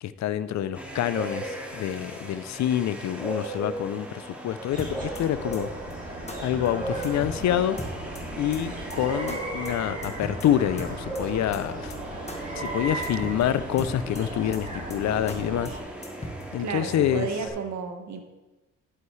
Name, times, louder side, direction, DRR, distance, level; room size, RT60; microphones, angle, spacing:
voice 1, 0.0-5.7 6.4-7.8 8.4-11.9 12.6-15.7 16.5-17.3, left 11 dB, 65° left, 15 dB, 0.6 m, -27 dB
sound 1, 0.7-17.5, right 1 dB, 5° right, 2.3 m, -37 dB
sound 2, 4.7-15.8, right 2 dB, 25° right, 2.8 m, -37 dB
sound 3, 4.8-5.2 5.5-5.6 5.9-6.0 6.3-6.4 6.7-6.8 7.0-7.4 7.8-8.2 8.5-8.6 8.9-9.0 9.3-9.4 9.7-9.8 10.0-10.5 10.8-11.2 11.5-11.6 11.9-12.0 12.3-12.4 12.7-12.8 13.0-13.4 13.8-14.2 14.5-14.6 14.9-15.0 15.3-15.4 15.7-15.8 16.0-16.4, left 2 dB, 20° left, 1.6 m, -37 dB
voice 2, 16.6-18.2, right 5 dB, 65° right, 6 dB, 1.4 m, -32 dB
11.5 x 9.4 x 3.2 m, 1.1 s
cardioid pair, 90°, 30 cm